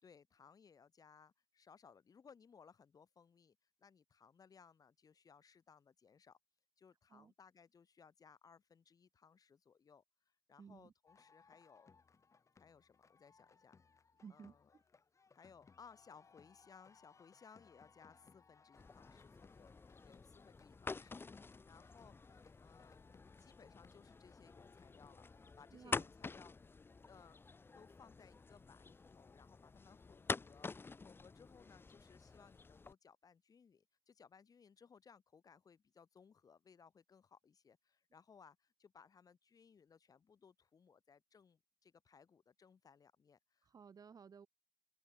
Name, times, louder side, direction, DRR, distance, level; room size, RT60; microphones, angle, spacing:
voice 1, 0.0-6.4 6.8-11.9 12.6-13.8 14.3-14.7 15.3-19.7 20.0-25.3 25.6-26.8 27.1-27.4 27.7-43.7, left 6 dB, 85° left, 3.4 m, -64 dB
voice 2, 10.6-10.9 14.2-14.8 25.7-26.0 43.6-44.5, right 6 dB, 85° right, 2.2 m, -56 dB
sound 1, 11.1-25.5, left 5 dB, 55° left, 3.9 m, -67 dB
sound 2, 18.7-32.9, left 4 dB, 40° left, 0.7 m, -48 dB
open air
wide cardioid pair, 135°, 6 cm